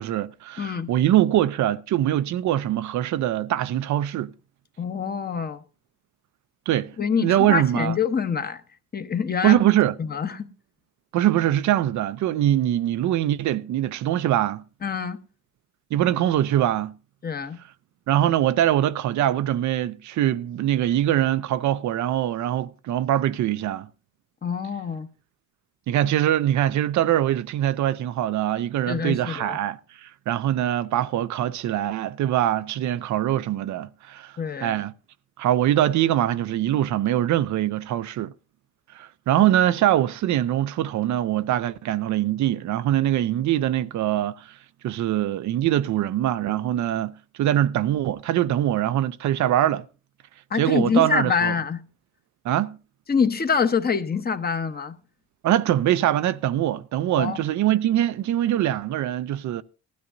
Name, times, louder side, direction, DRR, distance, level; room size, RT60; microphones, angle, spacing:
voice 1, 0.0-4.3 6.7-6.9 7.2-7.9 9.4-9.9 11.1-14.6 15.9-16.9 18.1-23.9 25.9-34.3 34.6-34.9 35.4-38.3 38.9-44.6 44.8-47.1 47.4-49.9 50.6-51.5 52.4-52.8 55.4-59.6, right 12 dB, 70° right, 0.6 m, -23 dB
voice 2, 0.6-0.9 4.8-5.6 7.0-8.6 8.9-9.6 10.0-10.5 14.8-15.2 17.2-17.6 24.4-25.1 28.9-29.6 34.4-34.8 50.5-51.8 53.1-54.9 57.2-57.4, left 6 dB, 30° left, 1.0 m, -25 dB
18.5 x 12.5 x 2.6 m
cardioid pair, 90°, 30 cm